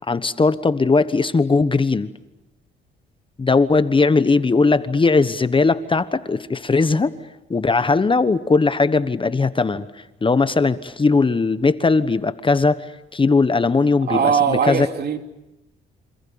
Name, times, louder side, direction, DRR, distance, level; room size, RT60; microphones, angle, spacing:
voice 1, 0.1-2.1 3.4-7.1 7.5-9.9 10.2-12.9 13.1-14.9, left 4 dB, 25° left, 1.2 m, -18 dB
voice 2, 14.1-15.2, right 7 dB, 55° right, 3.1 m, -20 dB
28.5 x 27.5 x 7.1 m
cardioid pair, 90°, 20 cm